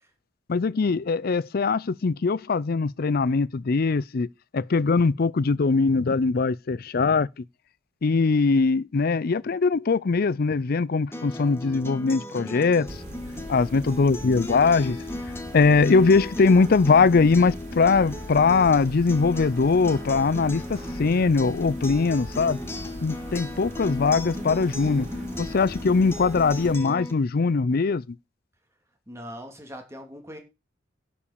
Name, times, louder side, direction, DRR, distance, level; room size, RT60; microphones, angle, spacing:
voice 1, 0.5-4.3 4.5-7.4 8.0-13.0 13.5-15.0 15.5-22.6 23.0-25.1 25.4-28.2, left 4 dB, 50° left, 0.5 m, -21 dB
Acoustic guitar, 11.1-27.1, left 2 dB, 15° left, 1.4 m, -36 dB
sound 1, 12.9-26.8, equal, 40° right, 3.5 m, -40 dB
voice 2, 13.4-13.9 22.2-22.4 29.1-30.4, equal, 15° right, 3.0 m, -42 dB
11.5 x 5.3 x 7.0 m
head